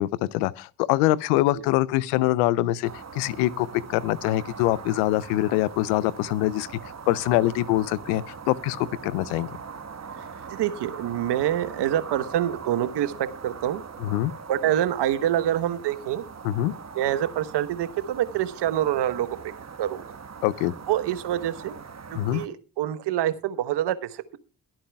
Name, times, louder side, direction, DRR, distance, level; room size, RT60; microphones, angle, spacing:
voice 1, 0.0-6.7 7.1-9.5 14.0-14.3 16.4-16.7 20.4-20.7 22.1-22.4, left 16 dB, 85° left, 0.7 m, -24 dB
sound 1, 2.8-22.5, right 5 dB, 40° right, 1.6 m, -41 dB
voice 2, 10.5-13.8 14.5-16.2 16.9-19.3 19.8-20.1 20.9-21.8 22.1-24.4, right 11 dB, 70° right, 1.1 m, -26 dB
22.0 x 8.9 x 2.3 m
hypercardioid pair, 45°, 43 cm